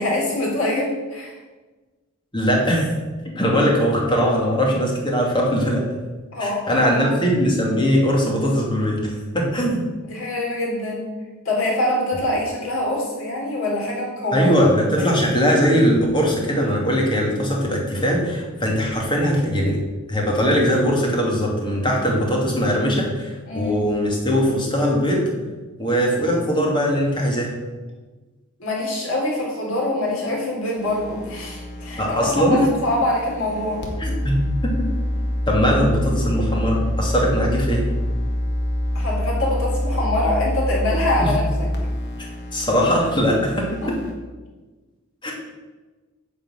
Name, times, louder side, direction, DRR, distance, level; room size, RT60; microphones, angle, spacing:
voice 1, 0.0-1.4 6.3-7.2 10.1-11.1 11.4-15.1 23.5-23.8 28.6-33.8 38.9-41.7 43.8-44.0, left 1 dB, 75° left, -3 dB, 3.8 m, -24 dB
voice 2, 2.3-2.8 3.4-5.8 6.4-9.8 14.3-19.8 20.1-25.2 25.8-27.5 32.0-32.6 34.0-34.4 35.5-37.9 41.2-41.3 42.5-43.7 45.2-45.3, equal, 25° left, -2 dB, 2.6 m, -20 dB
sound 1, 30.8-44.1, equal, 55° left, 2.0 m, -26 dB
9.7 x 5.2 x 7.9 m, 1.3 s
head